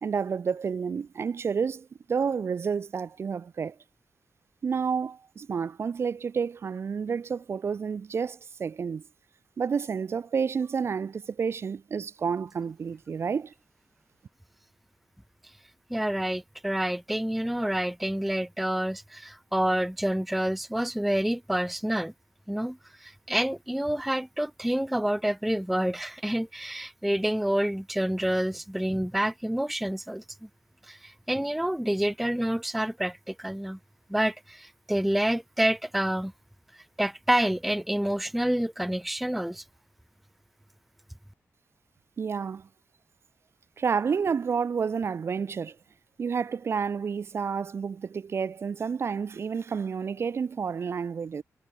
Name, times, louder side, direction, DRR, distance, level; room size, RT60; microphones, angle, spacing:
voice 1, 0.0-3.8 4.6-9.0 9.6-13.5 42.2-42.7 43.8-45.8 46.2-51.4, right 6 dB, 45° right, 0.6 m, -30 dB
voice 2, 15.9-22.1 22.5-30.2 30.9-33.8 34.1-36.3 37.0-39.6, right 1 dB, ahead, 0.4 m, -28 dB
wide cardioid pair, 150°, 6 cm